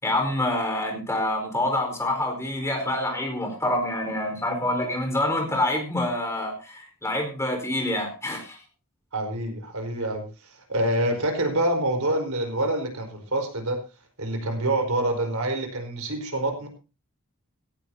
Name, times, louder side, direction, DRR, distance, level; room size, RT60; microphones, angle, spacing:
voice 1, 0.0-8.6, left 1 dB, 15° left, 3 dB, 4.6 m, -26 dB
voice 2, 9.1-13.8 14.2-16.7, right 1 dB, 85° right, 5 dB, 4.7 m, -26 dB
18.0 x 17.0 x 2.8 m, 0.31 s
head